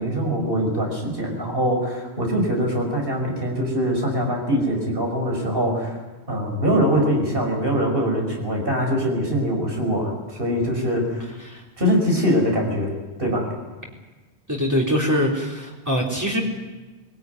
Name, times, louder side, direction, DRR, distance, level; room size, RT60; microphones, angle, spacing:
voice 1, 0.0-6.0 6.3-11.3 11.8-12.9 13.2-13.5, equal, 60° right, 1 dB, 5.8 m, -23 dB
voice 2, 14.5-16.4, equal, 15° right, -2 dB, 3.7 m, -23 dB
22.0 x 17.0 x 9.5 m, 1.2 s
omnidirectional pair, 1.1 m